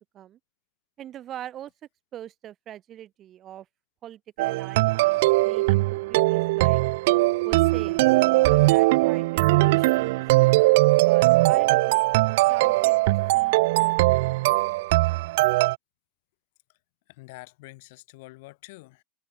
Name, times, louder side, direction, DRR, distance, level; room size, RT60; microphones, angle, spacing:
voice 1, 1.0-1.7 2.1-3.7 4.0-6.8 7.4-10.2 11.0-12.2 12.5-14.2 14.4-14.6, right 11 dB, 40° right, 3.5 m, -43 dB
sound 1, 4.4-15.8, right 21 dB, 65° right, 0.3 m, -20 dB
voice 2, 17.1-19.0, left 23 dB, 60° left, 5.6 m, -46 dB
hypercardioid pair, 80°, 0 cm